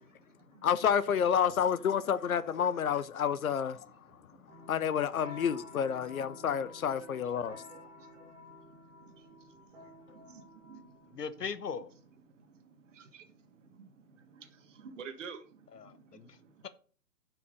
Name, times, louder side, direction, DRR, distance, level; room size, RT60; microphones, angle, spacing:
voice 1, 0.6-3.9 4.7-7.6, left 8 dB, 60° left, 0.8 m, -29 dB
voice 2, 4.1-4.5 5.1-5.3 5.9-6.1 7.0-8.7 9.2-11.2 12.2-16.7, right 6 dB, 50° right, 1.7 m, -53 dB
sound 1, 4.5-12.0, left 2 dB, 5° right, 0.6 m, -52 dB
voice 3, 11.1-11.9 15.7-16.3, left 6 dB, 80° left, 1.2 m, -39 dB
9.5 x 5.9 x 5.2 m
hypercardioid pair, 145°, 48 cm